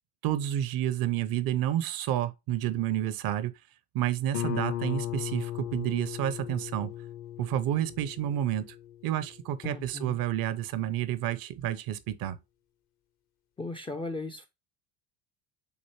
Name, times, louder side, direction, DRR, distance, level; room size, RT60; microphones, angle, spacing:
voice 1, 0.2-3.5 3.9-6.9 7.4-8.8 9.0-12.4, right 12 dB, 50° right, 0.6 m, -30 dB
Guitar, 4.3-9.8, left 12 dB, 50° left, 0.7 m, -37 dB
voice 2, 9.6-10.2 13.6-14.5, left 3 dB, 10° left, 0.4 m, -37 dB
6.6 x 2.6 x 2.9 m
hypercardioid pair, 80°, 48 cm